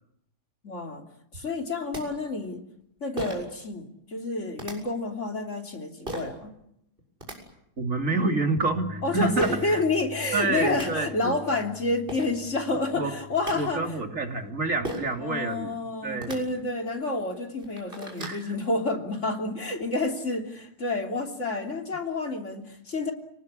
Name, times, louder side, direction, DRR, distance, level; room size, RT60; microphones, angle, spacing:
voice 1, 0.6-1.1 1.3-2.6 3.0-6.5 9.0-13.9 15.2-23.1, left 2 dB, 45° left, 4 dB, 3.5 m, -29 dB
sound 1, 1.6-1.7 1.9-2.0 3.2-3.5 4.6-4.7 6.1-6.3 7.0-7.4 9.4-9.6 10.4-10.5 10.7-10.9 11.8-11.9 12.1-12.3 13.1-13.5 14.8-15.2 16.1-16.4 17.0-17.1 17.5-18.4, equal, 30° right, 7.3 m, -35 dB
voice 2, 7.8-9.8 10.3-11.3 12.7-13.1 13.5-15.7 16.0-16.4 18.2-18.5, right 3 dB, 50° right, 5 dB, 3.3 m, -28 dB
Bass guitar, 8.6-14.8, left 2 dB, 15° right, 2.0 m, -44 dB
30.0 x 19.5 x 10.0 m, 0.78 s
omnidirectional pair, 1.7 m